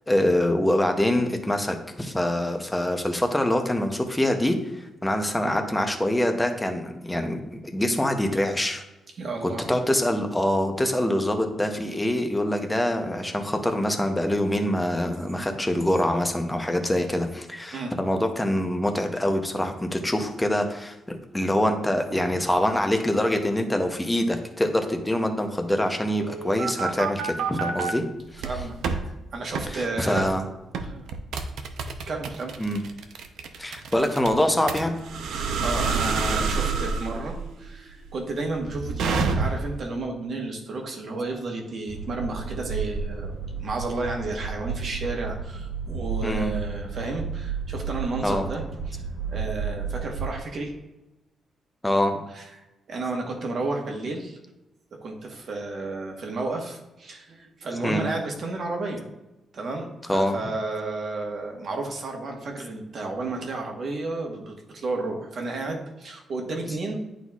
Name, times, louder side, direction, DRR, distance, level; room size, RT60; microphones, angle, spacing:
voice 1, 0.1-8.8 9.4-28.0 28.3-28.7 29.7-30.4 32.6-32.8 33.6-35.0 46.2-46.5 48.2-48.5 51.8-52.2 57.8-58.1 60.0-60.4 66.7-66.8, left 1 dB, 10° left, 5 dB, 0.6 m, -25 dB
voice 2, 9.2-9.7 17.7-17.9 22.1-22.4 28.4-28.8 29.0-30.3 30.8-31.0 32.1-32.5 35.3-49.0 49.3-50.7 52.3-52.5 52.9-54.4 55.0-59.1 59.5-67.0, right 3 dB, 45° right, 2 dB, 1.1 m, -32 dB
sound 1, 26.1-27.9 28.4-29.0 29.5-29.7 30.2-30.4 30.7-39.8, right 4 dB, 85° right, 0.6 m, -28 dB
sound 2, 41.9-50.4, right 5 dB, 25° right, 1.8 m, -32 dB
11.0 x 4.0 x 2.4 m, 1.0 s
wide cardioid pair, 175°, 0 cm